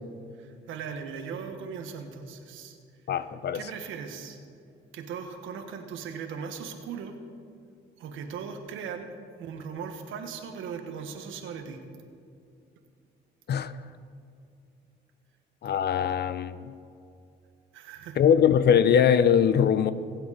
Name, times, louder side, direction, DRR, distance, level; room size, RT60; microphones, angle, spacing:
voice 1, 0.4-2.8 3.0-3.1 3.5-4.4 4.9-7.2 8.0-9.1 9.4-11.8 17.7-18.2, right 6 dB, 90° right, 1.3 m, -38 dB
voice 2, 3.1-3.6 13.5-13.7 15.6-16.6 18.2-19.9, left 8 dB, 55° left, 0.6 m, -21 dB
20.5 x 8.0 x 4.1 m
cardioid pair, 90°, 20 cm